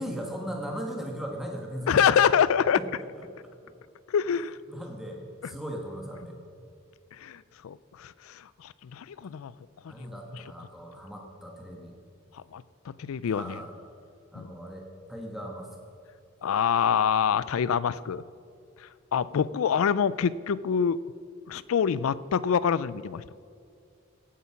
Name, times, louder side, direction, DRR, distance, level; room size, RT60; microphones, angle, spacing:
voice 1, 0.0-2.0 2.8-2.9 3.2-3.7 4.7-6.4 9.9-12.0 13.3-13.7 14.3-15.7, equal, ahead, 0 dB, 1.4 m, -38 dB
voice 2, 1.9-2.8 4.1-4.6 7.1-9.5 10.0-10.4 12.3-13.6 14.4-14.5 16.4-18.2 19.1-21.0 21.5-23.2, left 7 dB, 85° left, 19 dB, 0.4 m, -26 dB
17.0 x 8.3 x 5.9 m, 2.4 s
head